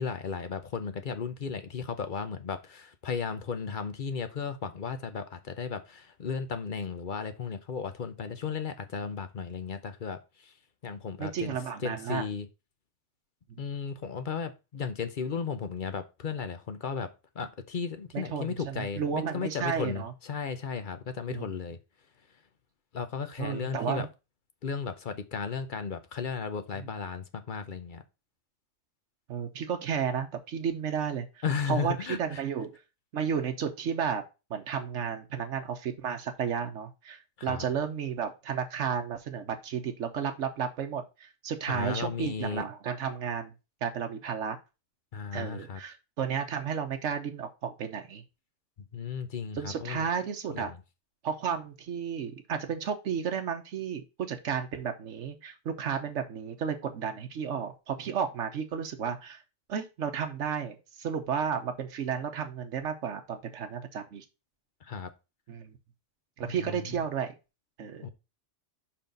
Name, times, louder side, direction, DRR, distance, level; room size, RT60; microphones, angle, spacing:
voice 1, 0.0-10.5 10.8-11.6 11.8-12.5 13.6-21.8 22.9-24.1 24.6-28.0 31.4-32.4 37.4-37.6 41.7-42.6 45.1-45.8 48.9-50.1 50.5-50.8 64.8-65.1 66.4-67.0 68.0-68.1, left 6 dB, 50° left, 0.8 m, -35 dB
voice 2, 11.2-12.3 18.1-20.1 21.3-21.5 23.4-24.1 26.8-26.9 29.3-32.7 33.1-34.2 34.5-43.5 43.8-44.6 45.3-48.2 49.5-50.7 51.2-59.4 59.7-64.2 65.5-65.8 66.4-67.3 67.8-68.1, right 7 dB, 90° right, 1.2 m, -33 dB
5.6 x 4.4 x 5.2 m
omnidirectional pair, 1.2 m